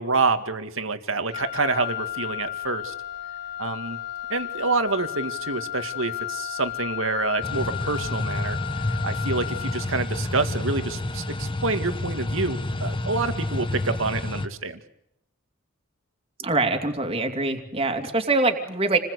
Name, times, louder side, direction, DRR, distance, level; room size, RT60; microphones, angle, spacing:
voice 1, 0.0-2.9 3.6-4.0 4.3-8.6 9.0-14.8, right 3 dB, 75° right, 9 dB, 2.2 m, -27 dB
Wind instrument woodwind instrument, 1.3-10.0, left 13 dB, 50° left, 1.8 m, -33 dB
sound 1, 7.4-14.5, left 1 dB, 25° left, 1.1 m, -29 dB
voice 2, 16.4-19.0, right 3 dB, 30° right, 5 dB, 2.9 m, -24 dB
29.0 x 20.5 x 8.4 m, 0.79 s
head